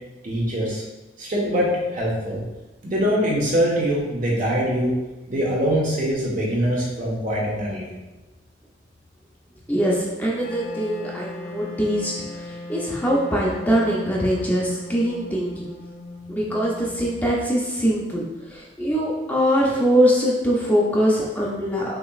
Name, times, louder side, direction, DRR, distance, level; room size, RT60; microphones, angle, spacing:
voice 1, 0.2-0.8 1.2-2.4 2.8-4.9 5.3-7.9, equal, 45° right, -4 dB, 1.2 m, -23 dB
voice 2, 9.7-15.7 16.3-22.0, equal, 10° left, -4 dB, 0.6 m, -22 dB
Wind instrument woodwind instrument, 10.4-17.4, left 2 dB, 55° left, 0.6 m, -38 dB
6.2 x 2.9 x 2.4 m, 1.1 s
head